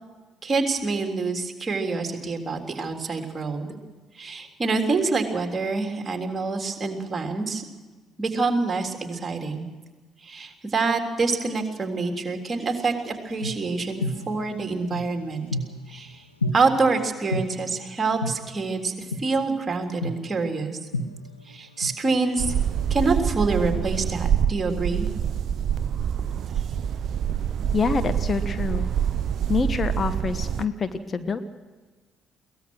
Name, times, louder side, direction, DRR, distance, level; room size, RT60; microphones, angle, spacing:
voice 1, 0.4-3.8 4.2-7.6 8.2-9.7 10.2-15.5 15.9-16.2 16.5-18.9 19.2-20.8 21.5-22.5 22.9-25.1, right 3 dB, 30° right, 4 dB, 3.5 m, -26 dB
sound 1, 13.3-16.0 16.4-16.5 17.3-17.4 18.2-18.3 19.1-19.2 20.0-20.1 20.9-22.5 22.8-24.5, left 1 dB, 90° left, 1.1 m, -31 dB
sound 2, 22.4-30.7, right 9 dB, 55° right, 0.5 m, -26 dB
voice 2, 27.7-28.9 29.5-31.4, left 5 dB, 35° left, 10 dB, 1.2 m, -26 dB
22.5 x 18.5 x 6.3 m, 1.3 s
figure-of-eight pair, 50°, 0 cm